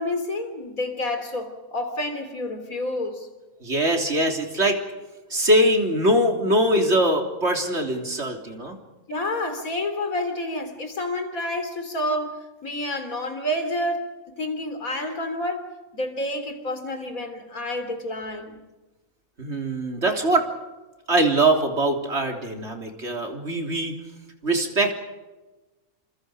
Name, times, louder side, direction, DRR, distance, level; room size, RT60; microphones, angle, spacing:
voice 1, 0.0-3.3 9.1-18.6, left 1 dB, 90° left, 4.0 m, -29 dB
voice 2, 3.6-4.8 5.3-8.7 19.4-20.5 21.1-23.9 24.4-25.0, right 1 dB, 50° right, 3.8 m, -22 dB
29.0 x 27.0 x 5.2 m
omnidirectional pair, 1.4 m